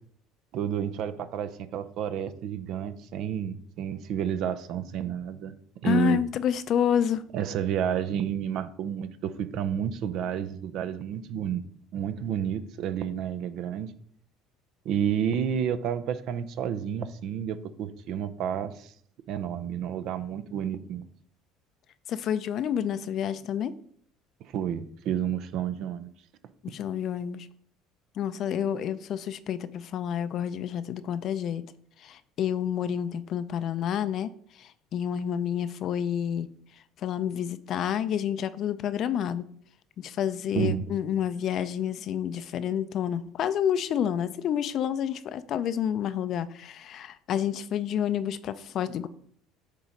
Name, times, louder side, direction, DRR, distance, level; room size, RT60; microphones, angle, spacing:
voice 1, 0.5-5.6 5.8-6.2 7.3-11.6 11.9-13.9 14.8-18.9 19.3-21.1 24.5-26.1 40.5-40.8, right 9 dB, 60° right, 0.5 m, -30 dB
voice 2, 5.8-7.2 22.1-23.7 26.6-27.5 28.2-31.6 32.0-34.3 34.6-36.5 37.0-39.4 40.0-49.1, left 9 dB, 55° left, 0.4 m, -29 dB
8.2 x 3.0 x 5.1 m
supercardioid pair, 90°, 0 cm